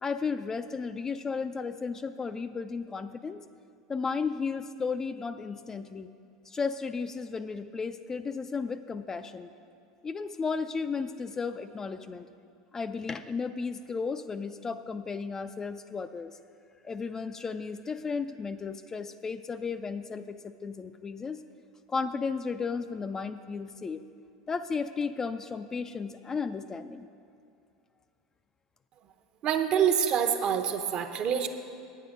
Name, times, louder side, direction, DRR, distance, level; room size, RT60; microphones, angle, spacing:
voice 1, 0.0-3.4 3.9-6.1 6.5-9.5 10.0-12.3 12.7-16.3 16.8-21.4 21.9-24.0 24.5-27.1, left 5 dB, 20° left, 10 dB, 0.3 m, -34 dB
voice 2, 29.4-31.5, right 8 dB, 45° right, 7 dB, 0.8 m, -26 dB
9.2 x 8.4 x 5.2 m, 2.4 s
hypercardioid pair, 95°, 2 cm